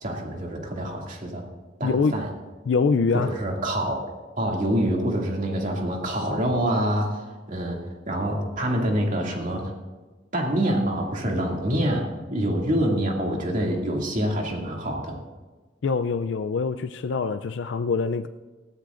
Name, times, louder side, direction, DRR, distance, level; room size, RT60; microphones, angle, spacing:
voice 1, 0.0-1.4 1.8-2.3 3.1-4.0 4.4-7.2 7.5-7.8 8.1-9.7 10.3-15.2, right 1 dB, 45° right, 0 dB, 2.4 m, -26 dB
voice 2, 1.8-2.2 2.7-3.3 15.8-18.3, left 4 dB, 80° left, 9 dB, 0.4 m, -24 dB
19.5 x 15.0 x 2.5 m, 1.3 s
head